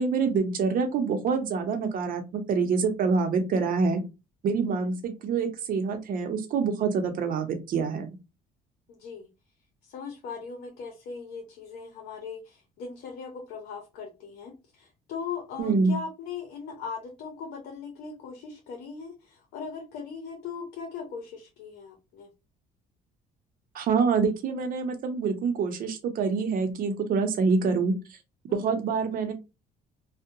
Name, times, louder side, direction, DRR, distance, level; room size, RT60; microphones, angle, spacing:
voice 1, 0.0-4.0 4.4-8.2 15.6-16.0 23.7-27.9 28.5-29.3, right 5 dB, 55° right, 6 dB, 0.7 m, -26 dB
voice 2, 8.9-9.3 9.9-22.3 28.5-28.8, left 5 dB, 80° left, 3 dB, 0.7 m, -39 dB
2.7 x 2.1 x 2.5 m, 0.26 s
cardioid pair, 110°, 17 cm